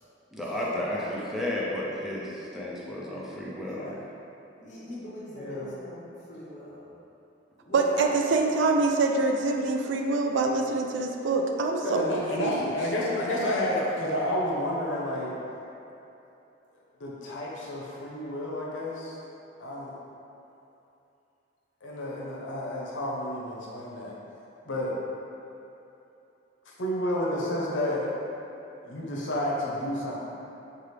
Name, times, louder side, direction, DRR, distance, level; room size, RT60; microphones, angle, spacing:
voice 1, 0.3-3.9, left 1 dB, ahead, -6 dB, 0.4 m, -32 dB
voice 2, 3.6-4.0 4.6-6.9 7.7-8.1 13.7-14.0, left 1 dB, 40° left, -7 dB, 0.8 m, -40 dB
voice 3, 5.3-5.8 11.8-15.3 17.0-19.2 19.6-20.0 21.8-24.1 24.7-25.0 26.7-28.1 28.8-30.2, left 1 dB, 85° left, -5 dB, 0.7 m, -30 dB
voice 4, 7.7-12.5, right 3 dB, 70° right, 2 dB, 0.3 m, -25 dB
4.7 x 2.4 x 3.2 m, 2.9 s
head